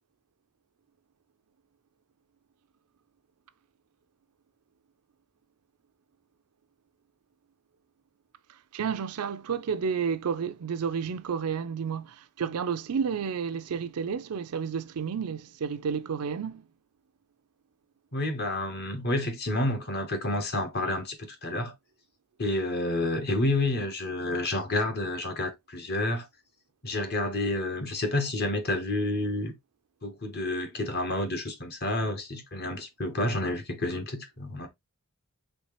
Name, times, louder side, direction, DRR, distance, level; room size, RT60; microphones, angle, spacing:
voice 1, 8.7-16.6, right 6 dB, 85° right, 0.4 m, -31 dB
voice 2, 18.1-21.7 22.4-26.3 26.8-29.5 30.0-34.7, left 1 dB, 45° left, 1.0 m, -29 dB
4.3 x 3.3 x 3.0 m
head